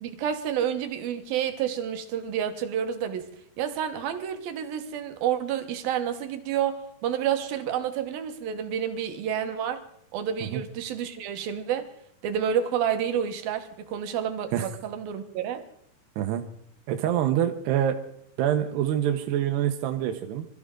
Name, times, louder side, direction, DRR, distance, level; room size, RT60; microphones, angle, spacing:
voice 1, 0.0-9.8 10.1-11.9 12.2-15.6, right 9 dB, 70° right, 7 dB, 2.9 m, -29 dB
voice 2, 16.9-18.0 18.4-20.5, right 10 dB, 90° right, 5 dB, 3.1 m, -25 dB
25.5 x 14.0 x 3.7 m, 0.70 s
omnidirectional pair, 4.6 m